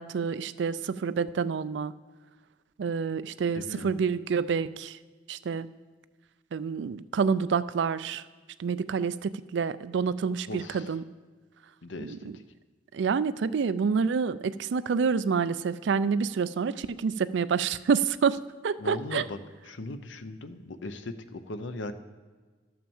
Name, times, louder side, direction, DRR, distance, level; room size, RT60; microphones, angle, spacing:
voice 1, 0.0-1.9 2.8-5.0 5.3-5.7 6.5-8.2 8.6-11.0 12.0-12.2 12.9-18.4 18.6-19.2, right 5 dB, 70° right, 15 dB, 0.4 m, -28 dB
voice 2, 3.5-3.9 10.5-10.9 11.8-12.2 18.8-19.4 19.7-21.9, left 2 dB, 85° left, 9 dB, 0.7 m, -38 dB
12.5 x 5.8 x 7.1 m, 1.4 s
head